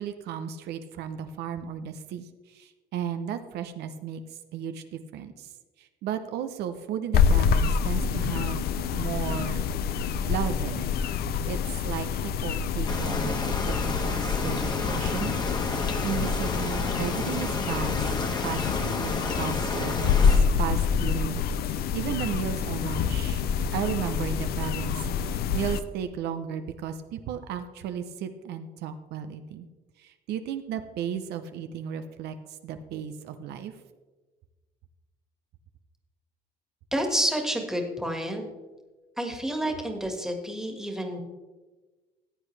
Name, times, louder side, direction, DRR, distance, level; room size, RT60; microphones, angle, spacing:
voice 1, 0.0-4.2 4.5-5.5 5.8-9.6 10.3-10.9 11.4-15.3 15.8-18.1 18.4-23.4 23.7-29.7 30.0-32.3 32.6-33.7, right 8 dB, 75° right, 8 dB, 0.7 m, -34 dB
sound 1, 7.1-25.8, left 6 dB, 65° left, 0.6 m, -27 dB
sound 2, 12.9-20.4, left 2 dB, 25° left, 1.4 m, -31 dB
voice 2, 36.9-38.4 39.2-41.2, right 1 dB, 5° right, 3 dB, 1.7 m, -29 dB
14.5 x 8.3 x 3.3 m, 1.2 s
cardioid pair, 110°, 17 cm